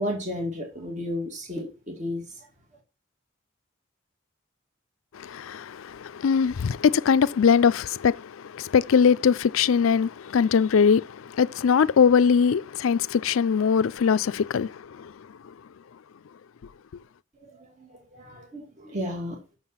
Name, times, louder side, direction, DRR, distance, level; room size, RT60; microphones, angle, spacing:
voice 1, 0.0-2.5 17.4-19.4, left 1 dB, 35° right, 2.3 m, -33 dB
voice 2, 5.1-15.1, left 6 dB, 85° left, 0.4 m, -21 dB
7.3 x 6.6 x 5.6 m
head